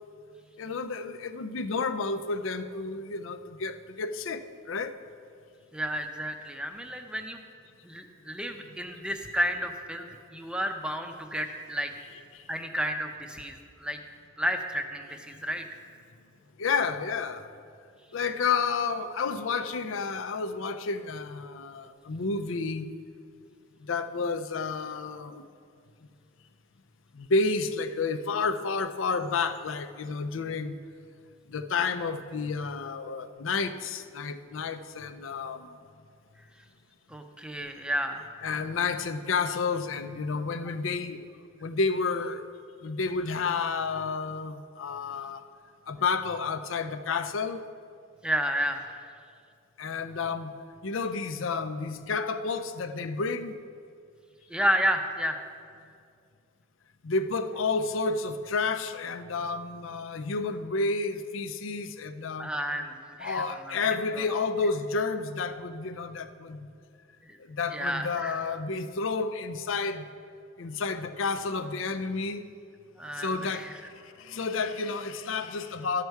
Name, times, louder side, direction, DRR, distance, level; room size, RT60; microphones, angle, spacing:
voice 1, 0.6-4.9 12.3-12.5 16.6-17.5 18.1-22.9 23.8-25.4 27.1-30.8 31.5-35.7 38.4-41.2 41.6-42.4 42.8-45.4 45.9-47.6 49.8-53.5 57.0-62.5 63.2-66.7 67.5-70.0 70.6-72.4 73.1-76.0, left 4 dB, 75° left, 10 dB, 0.5 m, -30 dB
voice 2, 5.7-7.4 7.8-11.9 12.5-14.0 14.4-15.7 37.1-38.4 48.2-48.9 54.5-55.4 62.4-63.9 64.2-64.3 67.2-67.4 67.7-68.4 73.0-73.7, equal, 5° right, 5 dB, 0.6 m, -31 dB
13.0 x 6.7 x 4.6 m, 2.3 s
head